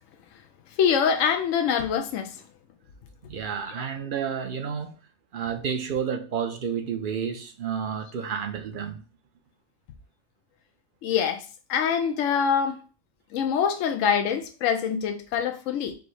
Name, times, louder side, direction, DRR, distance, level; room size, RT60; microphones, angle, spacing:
voice 1, 0.8-2.3 11.0-11.4 11.7-12.8 13.3-15.9, left 7 dB, 80° left, 1.0 m, -24 dB
voice 2, 3.2-5.0 5.3-9.0, right 7 dB, 55° right, 0.6 m, -30 dB
4.8 x 2.0 x 4.6 m
omnidirectional pair, 1.3 m